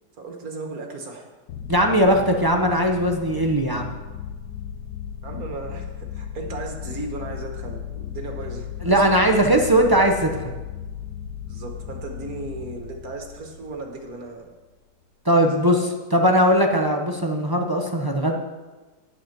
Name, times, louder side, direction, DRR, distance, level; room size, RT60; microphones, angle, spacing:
voice 1, 0.2-1.3 5.2-9.0 9.3-9.5 11.5-14.5 15.4-15.8, right 3 dB, 60° right, 2 dB, 1.9 m, -36 dB
sound 1, 1.5-14.4, left 8 dB, 75° left, 1.2 m, -36 dB
voice 2, 1.7-3.9 8.8-10.6 15.2-18.4, equal, 25° right, 2 dB, 0.5 m, -19 dB
9.8 x 8.0 x 6.0 m, 1.2 s
omnidirectional pair, 1.8 m